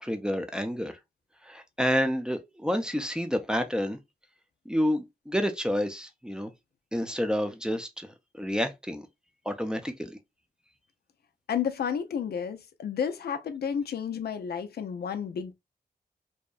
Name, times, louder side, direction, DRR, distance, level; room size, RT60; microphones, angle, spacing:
voice 1, 0.0-1.0 1.4-4.0 4.7-6.5 6.9-9.1 9.5-10.2, equal, 5° right, 0.5 m, -29 dB
voice 2, 11.5-15.5, left 7 dB, 85° left, 0.4 m, -31 dB
2.7 x 2.1 x 2.3 m
cardioid pair, 65°, 16 cm